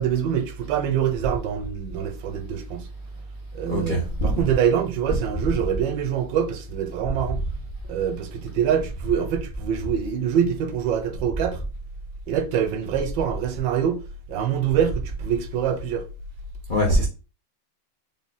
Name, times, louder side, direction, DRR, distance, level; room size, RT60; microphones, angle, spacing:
voice 1, 0.0-2.9 3.5-7.4 7.9-11.6 12.3-14.0 14.3-16.0, right 8 dB, 80° right, 1.3 m, -25 dB
voice 2, 3.7-4.3 16.7-17.1, equal, 70° left, 0.4 m, -22 dB
3.7 x 2.1 x 3.9 m
omnidirectional pair, 2.1 m